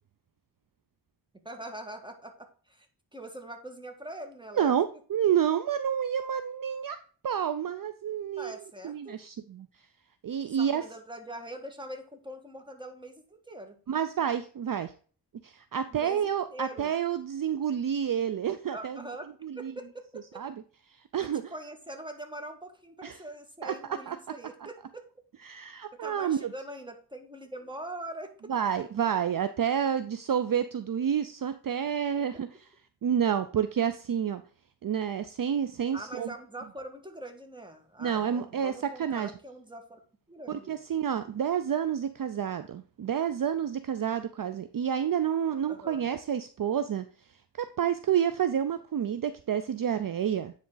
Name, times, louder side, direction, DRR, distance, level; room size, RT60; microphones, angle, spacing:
voice 1, 1.4-2.9 3.1-4.8 8.4-9.2 10.6-13.8 15.9-16.9 18.7-20.4 21.2-25.0 25.9-28.5 32.2-32.3 35.9-40.0 40.3-40.8 45.7-46.1, right 1 dB, 10° right, 4 dB, 1.5 m, -43 dB
voice 2, 4.6-7.0 7.2-9.7 10.2-10.8 13.9-14.9 15.4-19.0 19.4-19.7 20.4-20.5 21.1-21.5 23.0-23.2 23.6-24.4 25.4-26.5 28.5-32.7 33.0-34.4 34.8-36.3 38.0-39.3 40.5-47.0 47.6-50.5, right 8 dB, 55° right, 11 dB, 0.5 m, -29 dB
9.4 x 3.8 x 3.9 m, 0.40 s
wide cardioid pair, 65°, 42 cm